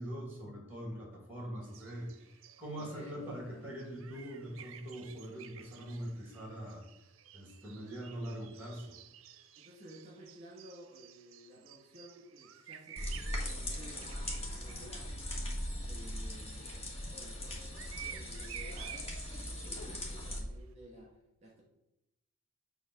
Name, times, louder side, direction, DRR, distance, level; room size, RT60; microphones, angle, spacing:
voice 1, 0.0-6.8 7.3-9.0, right 1 dB, 10° right, -1 dB, 2.1 m, -43 dB
sound 1, 1.6-14.9 15.6-20.3, right 10 dB, 65° right, 0.5 m, -52 dB
voice 2, 2.7-3.9 9.6-16.7 17.1-19.1 19.4-21.6, right 1 dB, 30° right, -3 dB, 1.9 m, -55 dB
sound 2, 13.0-20.4, left 1 dB, 30° left, 1.4 m, -40 dB
7.9 x 3.5 x 6.1 m, 0.89 s
head